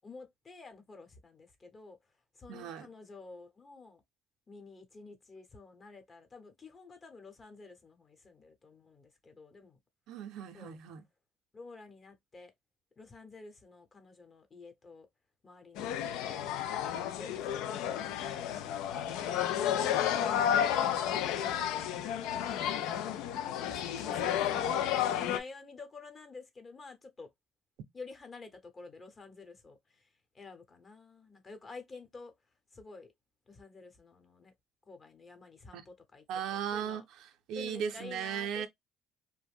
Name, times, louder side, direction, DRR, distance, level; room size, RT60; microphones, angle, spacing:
voice 1, 0.0-2.0 2.4-4.0 4.5-9.8 10.5-10.8 11.5-12.5 13.0-15.1 15.4-15.9 16.2-16.9 17.2-19.1 19.8-22.0 22.3-27.3 27.9-30.1 30.3-32.3 32.7-33.1 33.5-34.5 34.9-36.2 36.5-37.0 37.5-38.7, left 3 dB, 35° left, 0.9 m, -50 dB
voice 2, 2.5-2.9 10.1-11.0 19.8-20.0 35.7-35.8 36.3-38.7, right 8 dB, 75° right, 0.5 m, -37 dB
sound 1, 15.8-25.4, left 10 dB, 85° left, 0.3 m, -32 dB
2.5 x 2.1 x 3.4 m
cardioid pair, 90°, 0 cm